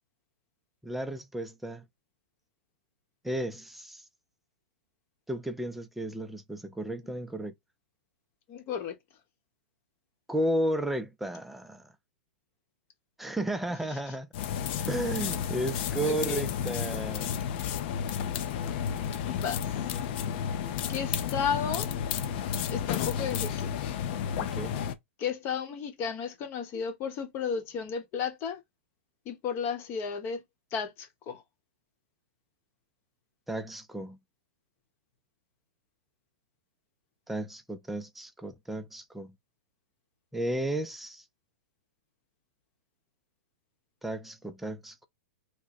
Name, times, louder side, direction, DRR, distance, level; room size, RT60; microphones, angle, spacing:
voice 1, 0.8-1.8 3.2-4.0 5.3-7.5 10.3-11.8 13.2-14.3 14.9-17.4 24.4-24.8 33.5-34.2 37.3-39.3 40.3-41.2 44.0-45.1, right 1 dB, ahead, 0.4 m, -33 dB
voice 2, 8.5-9.0 16.0-16.5 19.4-19.6 20.9-21.9 22.7-23.7 25.2-28.6 29.3-30.4 30.7-31.4, left 6 dB, 35° left, 1.0 m, -33 dB
sound 1, 14.3-24.9, left 8 dB, 50° left, 0.6 m, -32 dB
3.0 x 2.2 x 4.1 m
hypercardioid pair, 125°, 7 cm